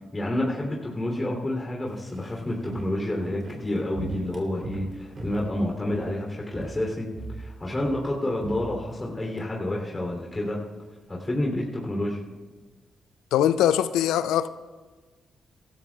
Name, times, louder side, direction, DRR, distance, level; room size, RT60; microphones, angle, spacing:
voice 1, 0.1-7.1 7.4-10.6 11.1-12.2, left 1 dB, 25° left, 3.0 m, -29 dB
Walk footsteps, 1.9-6.2 6.5-6.9 7.1-9.5 9.7-9.8, right 2 dB, 45° right, 3.1 m, -38 dB
voice 2, 13.3-14.5, left 11 dB, 80° left, 0.4 m, -22 dB
24.0 x 13.0 x 2.4 m
hypercardioid pair, 45°, 0 cm